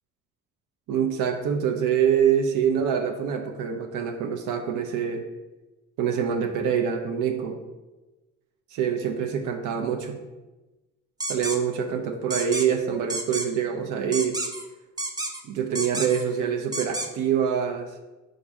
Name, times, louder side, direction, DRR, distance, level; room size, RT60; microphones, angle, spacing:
voice 1, 0.9-5.3 6.0-7.6 8.7-10.2 11.3-14.4 15.4-17.9, right 8 dB, 85° right, 4 dB, 0.5 m, -25 dB
sound 1, 11.2-11.6 12.3-12.7 13.1-13.5 14.1-14.7 15.0-15.4 15.8-16.3 16.7-17.1, right 2 dB, 15° right, 0.5 m, -30 dB
4.0 x 2.6 x 4.6 m, 1.1 s
cardioid pair, 90°, 30 cm